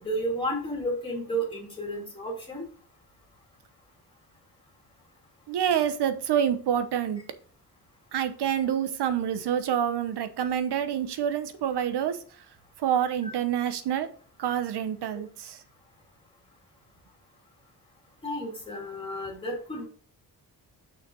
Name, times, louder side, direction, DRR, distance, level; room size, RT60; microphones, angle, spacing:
voice 1, 0.0-2.7 13.2-13.3 18.2-19.9, right 1 dB, 15° left, -1 dB, 2.4 m, -32 dB
voice 2, 5.5-7.2 8.1-12.2 12.8-14.1 14.4-15.6, right 9 dB, 90° right, 10 dB, 1.0 m, -27 dB
6.4 x 5.9 x 3.8 m, 0.44 s
wide cardioid pair, 175°, 39 cm